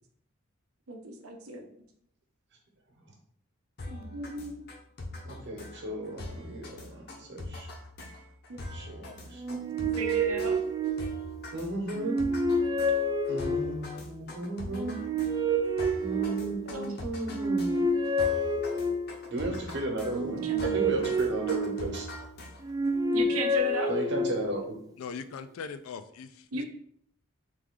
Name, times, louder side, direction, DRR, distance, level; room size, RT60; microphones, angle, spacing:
voice 1, 0.9-1.6 3.9-4.7 8.5-8.6 9.8-10.6 16.7-17.0 20.2-21.1 23.1-23.9 26.5-26.6, right 2 dB, 80° right, 4 dB, 0.8 m, -36 dB
sound 1, 3.8-22.9, left 2 dB, 50° left, 0.8 m, -43 dB
voice 2, 5.2-7.7 8.7-9.8 11.5-12.2 13.3-15.0 16.0-17.7 19.3-22.1 23.9-24.8, right 2 dB, 55° right, 1 dB, 1.0 m, -35 dB
sound 2, 9.4-11.5 12.0-14.0 14.7-16.8 17.3-19.3 20.0-22.1 22.6-24.6, right 1 dB, 15° right, 0.3 m, -29 dB
voice 3, 25.0-26.6, left 5 dB, 75° left, 10 dB, 0.4 m, -40 dB
3.4 x 3.4 x 3.7 m, 0.66 s
head